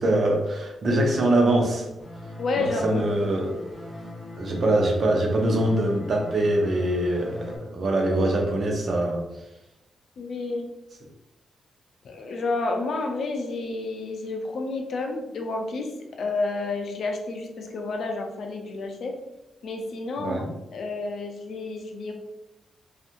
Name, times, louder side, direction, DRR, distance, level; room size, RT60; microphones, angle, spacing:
voice 1, 0.0-1.9 2.6-3.6 4.4-9.2 20.2-20.5, right 1 dB, 55° right, 1 dB, 0.7 m, -23 dB
sound 1, 2.0-7.6, left 1 dB, 15° left, 0.9 m, -40 dB
voice 2, 2.4-3.1 10.2-10.7 12.0-15.9 16.2-19.2 19.6-20.4 20.7-22.1, left 3 dB, 70° left, 3 dB, 0.5 m, -30 dB
2.7 x 2.4 x 2.5 m, 0.92 s
cardioid pair, 80°, 0 cm